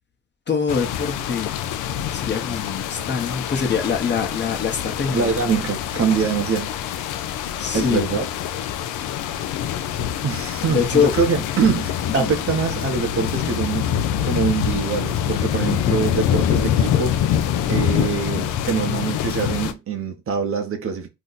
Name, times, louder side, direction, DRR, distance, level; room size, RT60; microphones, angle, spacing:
voice 1, 0.5-1.5 2.1-5.3 6.0-6.1 7.6-8.1 10.7-11.1 12.1-12.3, left 6 dB, 35° left, 0.8 m, -24 dB
sound 1, 0.7-19.7, left 9 dB, 80° left, 0.5 m, -25 dB
voice 2, 5.1-6.7 7.7-8.3 10.2-13.9 14.2-17.2 17.7-21.1, right 6 dB, 45° right, 0.7 m, -24 dB
2.7 x 2.1 x 3.8 m
cardioid pair, 90°, 30 cm